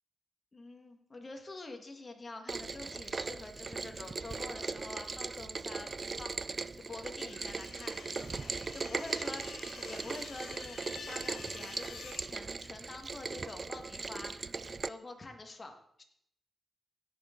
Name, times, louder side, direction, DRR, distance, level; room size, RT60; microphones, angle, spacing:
voice 1, 0.5-16.0, left 2 dB, 35° left, 4 dB, 1.7 m, -47 dB
Rain, 2.5-14.9, right 4 dB, 45° right, 0.3 m, -39 dB
sound 1, 7.3-12.3, left 5 dB, 90° left, 1.2 m, -49 dB
16.5 x 6.5 x 3.8 m, 0.71 s
cardioid pair, 75°, 0 cm